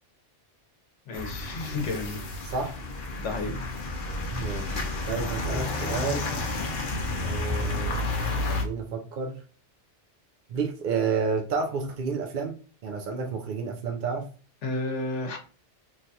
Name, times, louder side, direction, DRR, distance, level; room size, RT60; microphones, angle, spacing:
voice 1, 1.1-2.2 3.2-3.6 14.6-15.4, left 2 dB, 80° left, 2 dB, 1.1 m, -32 dB
sound 1, 1.1-8.6, left 2 dB, 55° left, 0.7 m, -31 dB
voice 2, 2.4-2.8 4.3-6.3 7.2-8.0 8.5-9.4 10.5-14.3, right 5 dB, 60° right, 2 dB, 0.5 m, -30 dB
3.2 x 2.2 x 2.7 m, 0.39 s
omnidirectional pair, 1.2 m